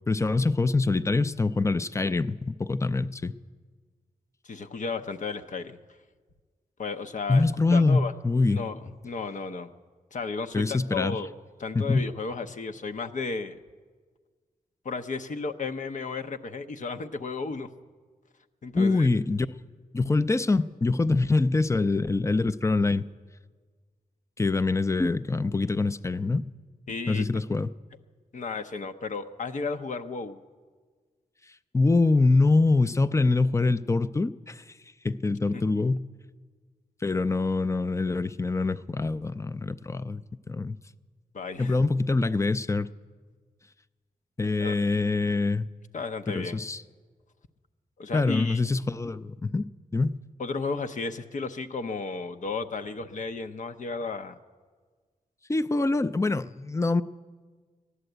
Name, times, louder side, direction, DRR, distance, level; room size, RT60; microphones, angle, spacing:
voice 1, 0.1-3.3 7.3-8.6 10.5-11.2 11.7-12.1 18.7-19.5 19.9-23.0 24.4-26.5 27.1-27.7 31.7-34.6 35.0-36.0 37.0-40.2 40.5-40.8 41.6-42.9 44.4-45.7 46.3-46.8 48.1-49.7 49.9-50.1 55.5-57.0, left 3 dB, 20° left, 12 dB, 0.4 m, -24 dB
voice 2, 4.4-5.8 6.8-7.4 7.7-8.1 8.5-9.7 10.1-11.3 11.6-13.6 14.8-17.7 18.6-19.1 26.9-27.3 28.3-30.4 35.5-35.9 41.3-41.8 44.6-44.7 45.9-46.6 48.0-48.6 50.4-54.4, left 4 dB, 60° left, 7 dB, 0.7 m, -33 dB
14.0 x 11.0 x 7.9 m, 1.5 s
wide cardioid pair, 90°, 15 cm